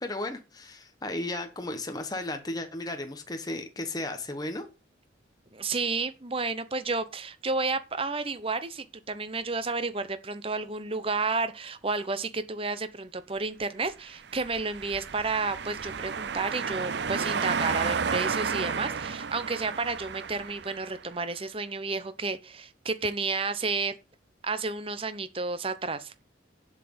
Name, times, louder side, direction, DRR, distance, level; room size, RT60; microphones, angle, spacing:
voice 1, 0.0-4.7, left 2 dB, 20° left, 1.1 m, -34 dB
voice 2, 5.5-24.0 24.4-26.1, right 3 dB, 30° right, 0.9 m, -31 dB
sound 1, 14.2-21.0, right 5 dB, 60° right, 0.6 m, -32 dB
7.8 x 5.9 x 7.9 m
head